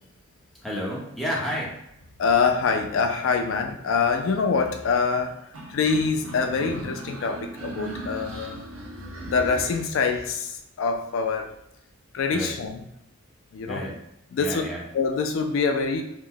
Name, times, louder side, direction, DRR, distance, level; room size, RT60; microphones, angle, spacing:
voice 1, 0.6-1.7 12.3-12.5 13.6-13.9 14.4-14.8, equal, ahead, -6 dB, 0.8 m, -30 dB
voice 2, 2.2-5.4 5.7-8.6 9.3-11.5 12.1-12.8 13.5-13.8 14.3-14.6 14.9-16.0, left 5 dB, 70° left, 4 dB, 0.3 m, -25 dB
sound 1, 5.5-10.3, right 1 dB, 80° right, 0.7 m, -37 dB
3.0 x 2.1 x 3.7 m, 0.79 s
head